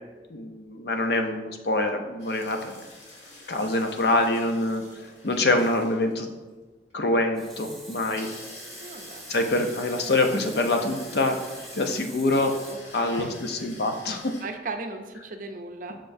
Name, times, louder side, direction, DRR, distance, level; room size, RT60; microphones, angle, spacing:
voice 1, 0.3-2.8 3.5-4.8 5.2-6.3 6.9-8.3 9.3-11.4 11.8-12.6 12.9-14.3, left 2 dB, 60° left, 5 dB, 0.6 m, -25 dB
sound 1, 2.2-14.4, left 1 dB, 80° left, 1.7 m, -47 dB
Water tap faucet, 7.1-12.7, right 1 dB, ahead, 1.2 m, -45 dB
voice 2, 8.8-9.3 12.7-13.4 14.4-16.0, right 3 dB, 50° right, 5 dB, 0.6 m, -37 dB
6.7 x 6.0 x 2.6 m, 1.2 s
head